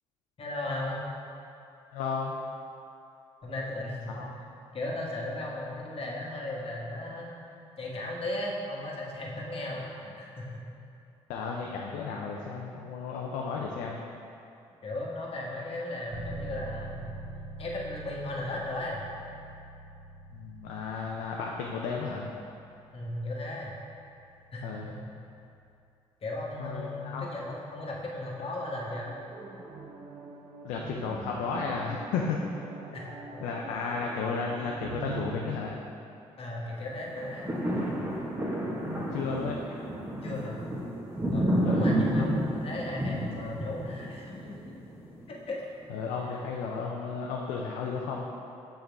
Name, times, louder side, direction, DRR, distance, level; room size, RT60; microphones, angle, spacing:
voice 1, 0.4-1.0 3.4-4.3 4.7-10.6 14.8-17.2 17.6-19.0 22.9-23.8 24.5-25.0 26.2-29.1 32.9-33.4 36.4-37.5 40.2-40.6 41.3-44.8 45.3-45.6 47.5-47.7, left 1 dB, 50° left, -3 dB, 1.3 m, -36 dB
voice 2, 1.9-2.3 4.1-4.3 11.3-14.0 20.3-22.3 24.6-24.9 26.6-27.3 30.6-32.6 33.4-35.8 38.9-39.6 41.6-41.9 45.9-48.3, left 5 dB, 85° left, -1 dB, 0.5 m, -33 dB
Bass guitar, 16.1-25.8, right 2 dB, 80° right, 0.8 m, -46 dB
sound 1, 28.7-35.6, right 4 dB, 50° right, 0.8 m, -44 dB
sound 2, 37.0-45.3 45.8-45.9, right 1 dB, 20° right, 1.3 m, -30 dB
6.5 x 4.5 x 3.5 m, 2.7 s
supercardioid pair, 55°, 13 cm